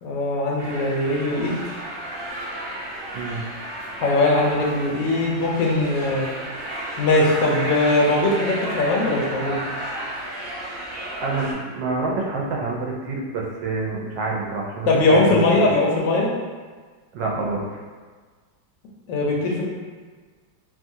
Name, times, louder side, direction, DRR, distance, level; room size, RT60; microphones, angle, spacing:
voice 1, 0.0-1.5 4.0-6.3 7.0-9.6 14.9-16.3 19.1-19.6, left 2 dB, 85° left, -2 dB, 1.3 m, -20 dB
sound 1, 0.6-11.5, right 1 dB, 60° right, 0.9 m, -33 dB
voice 2, 3.1-3.5 11.2-15.7 17.1-17.8, right 3 dB, 85° right, -2 dB, 1.2 m, -27 dB
3.2 x 2.3 x 2.6 m, 1.5 s
omnidirectional pair, 1.9 m